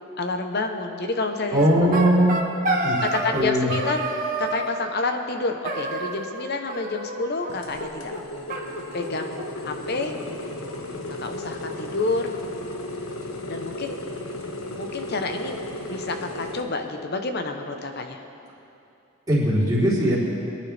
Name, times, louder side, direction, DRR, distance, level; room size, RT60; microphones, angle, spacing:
voice 1, 0.2-2.3 3.0-4.1 4.4-8.2 8.9-9.4 9.6-10.1 11.2-12.3 13.5-14.0 14.8-15.6 15.9-18.2, left 3 dB, 50° left, 5 dB, 0.9 m, -29 dB
voice 2, 1.5-2.4 2.8-3.0 3.3-3.7 19.3-20.2, equal, 20° right, -9 dB, 3.6 m, -20 dB
sound 1, 1.6-3.4 3.7-4.7 5.6-6.4 6.7-7.5 7.8-7.9 8.1-8.2 8.5-9.5, right 2 dB, 40° right, 1.3 m, -29 dB
sound 2, 7.5-16.6, left 2 dB, 75° left, 1.3 m, -35 dB
23.5 x 10.5 x 3.4 m, 2.7 s
head